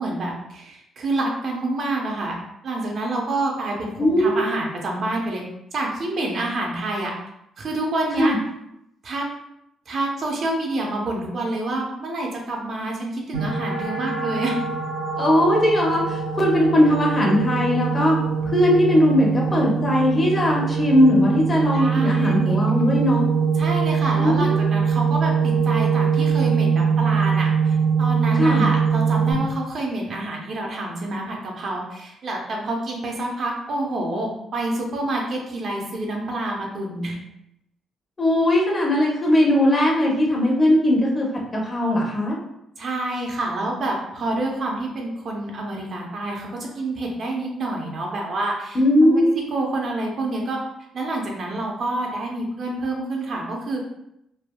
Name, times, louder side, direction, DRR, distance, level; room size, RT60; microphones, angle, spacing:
voice 1, 0.0-2.3 2.6-5.4 5.7-7.1 7.6-8.3 9.0-9.2 9.9-14.6 21.7-22.6 23.6-37.2 42.8-49.2 49.5-50.6 50.9-53.8, right 2 dB, 55° right, 0 dB, 0.6 m, -27 dB
voice 2, 4.0-4.5 8.2-8.4 15.2-18.2 18.4-23.3 24.2-24.7 28.4-28.7 38.2-41.3 41.6-42.3 48.7-49.4, left 1 dB, 30° left, -2 dB, 0.8 m, -19 dB
sound 1, 13.3-29.3, right 6 dB, 85° right, 0.9 m, -22 dB
3.3 x 2.2 x 2.2 m, 0.81 s
cardioid pair, 90°, 0 cm